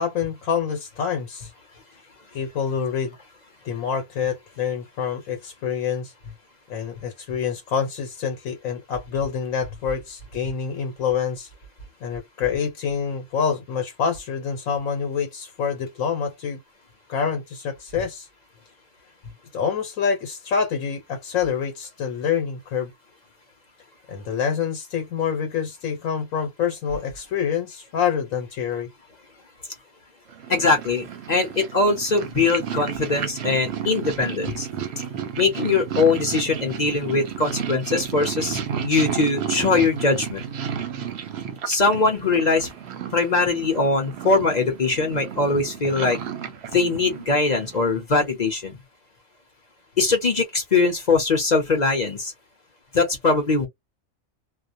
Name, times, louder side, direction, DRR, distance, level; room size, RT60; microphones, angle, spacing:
voice 1, 0.0-1.5 2.3-3.2 3.6-6.1 6.7-11.5 12.0-16.6 17.1-18.3 19.5-22.9 24.1-28.9, left 7 dB, 75° left, 1.1 m, -26 dB
Purr, 30.3-48.0, right 8 dB, 60° right, 0.8 m, -32 dB
voice 2, 30.5-34.7 35.4-40.5 41.7-42.7 43.1-46.2 46.7-48.8 50.0-52.3 52.9-53.7, left 3 dB, 40° left, 0.8 m, -21 dB
2.4 x 2.1 x 2.5 m
omnidirectional pair, 1.4 m